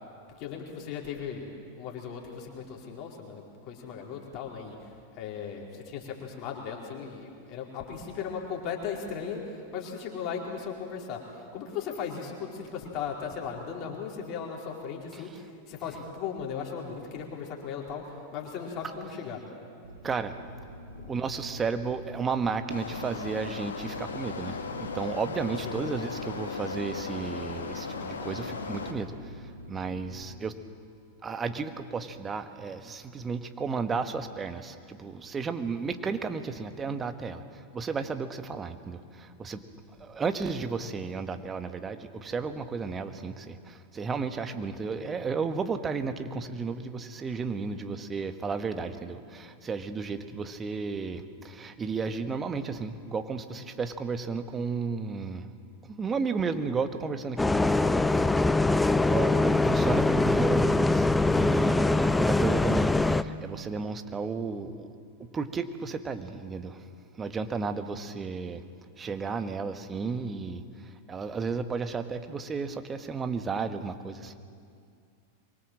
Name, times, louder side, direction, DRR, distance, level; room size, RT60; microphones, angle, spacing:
voice 1, 0.3-1.5 1.8-4.8 5.2-19.4 20.9-21.1 25.6-25.7, left 6 dB, 40° left, -1 dB, 4.4 m, -37 dB
sound 1, 19.8-30.4, right 1 dB, 70° right, 2.2 m, -47 dB
voice 2, 20.0-20.4 21.1-30.6 31.2-39.6 40.0-55.5 55.8-58.1 59.0-64.9 65.3-66.9 67.1-68.6 69.0-74.4, right 5 dB, 20° right, 9 dB, 1.5 m, -33 dB
sound 2, 22.7-28.9, left 4 dB, 70° left, 2.1 m, -37 dB
Bus, 57.4-63.2, left 2 dB, 5° left, 0.7 m, -23 dB
24.5 x 23.5 x 7.5 m, 2.3 s
figure-of-eight pair, 90°, 0 cm